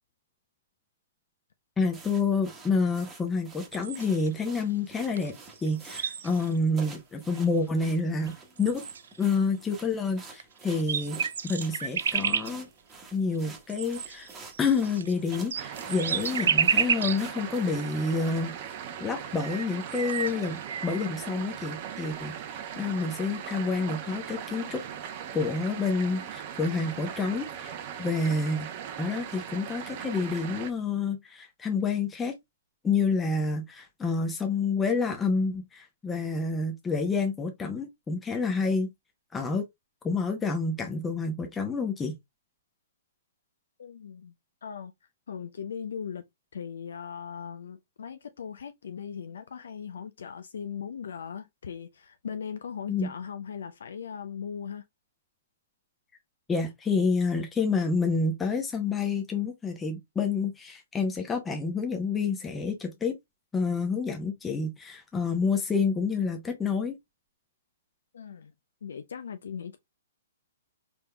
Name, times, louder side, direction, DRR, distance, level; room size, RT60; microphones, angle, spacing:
voice 1, 1.8-5.3 5.6-8.8 9.2-12.7 13.1-14.3 14.6-18.5 19.0-24.8 25.3-28.7 29.0-32.3 32.8-38.9 39.3-39.6 40.0-42.1 52.9-53.1 56.5-63.1 63.5-67.0, left 4 dB, 15° left, 0.8 m, -28 dB
sound 1, 1.9-18.2, right 4 dB, 15° right, 1.2 m, -49 dB
sound 2, 3.7-4.3 5.2-5.3 5.6-6.6 7.4-7.5 8.2-8.3 8.6-9.2 10.3-10.4 10.7-12.5 13.7-17.2 17.8-17.9 19.0-19.1 19.4-21.1, right 7 dB, 70° right, 0.3 m, -30 dB
sound 3, 15.5-30.7, right 9 dB, 40° right, 0.7 m, -39 dB
voice 2, 43.8-44.3 44.6-44.9 45.3-46.2 46.5-54.8 68.1-68.5 68.8-69.8, left 7 dB, 70° left, 0.4 m, -39 dB
4.3 x 3.5 x 2.2 m
hypercardioid pair, 125°, 0 cm